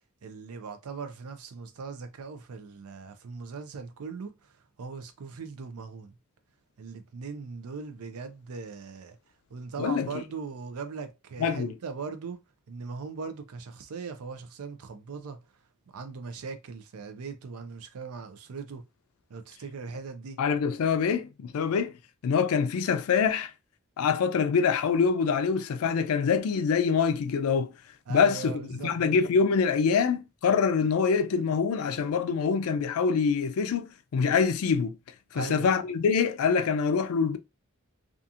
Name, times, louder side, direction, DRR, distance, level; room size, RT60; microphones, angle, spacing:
voice 1, 0.2-4.3 4.8-6.1 6.8-9.2 9.5-12.4 12.7-15.4 15.9-18.8 19.3-20.4 28.1-28.9 35.3-35.7, right 5 dB, 85° right, 0.5 m, -39 dB
voice 2, 11.4-11.7 20.4-21.9 22.2-23.5 24.0-27.7 28.1-35.0 35.3-37.4, left 6 dB, 80° left, 0.4 m, -25 dB
2.7 x 2.4 x 2.4 m
head